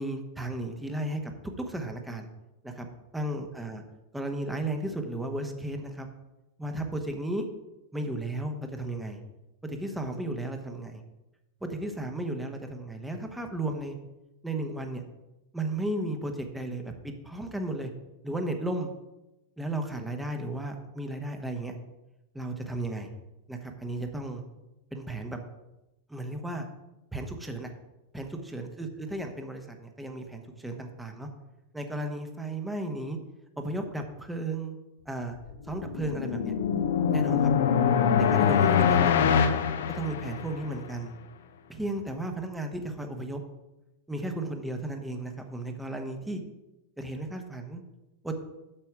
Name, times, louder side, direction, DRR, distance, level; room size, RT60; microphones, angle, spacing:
voice 1, 0.0-1.3 1.6-2.3 2.6-2.9 3.1-3.8 4.1-6.1 6.6-7.5 7.9-9.2 9.6-11.0 11.6-14.0 14.4-15.0 15.5-17.9 18.2-18.9 19.6-21.7 22.3-23.1 23.5-24.4 24.9-25.4 26.1-26.7 27.1-27.7 28.1-31.3 31.7-33.2 33.6-34.8 35.1-35.3 35.7-36.5 37.1-37.5 38.2-39.5 39.9-41.2 41.7-43.4 44.1-46.4 47.0-47.8 48.2-48.3, right 1 dB, 5° right, 5 dB, 1.2 m, -34 dB
sound 1, 35.5-40.7, left 7 dB, 60° left, 0.7 m, -24 dB
8.8 x 7.0 x 4.9 m, 0.98 s
figure-of-eight pair, 90°, 0 cm